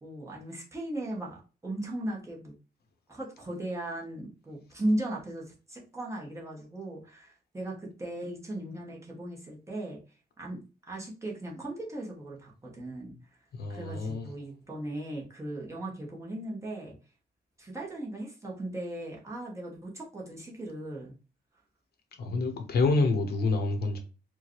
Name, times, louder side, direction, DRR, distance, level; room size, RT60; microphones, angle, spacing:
voice 1, 0.0-2.6 3.1-10.0 10.4-10.6 10.9-13.1 13.7-17.0 17.6-21.1, right 1 dB, 15° right, 0.9 m, -37 dB
voice 2, 13.6-14.2 22.2-24.0, left 3 dB, 65° left, 0.8 m, -27 dB
4.4 x 2.2 x 3.0 m
wide cardioid pair, 175°, 17 cm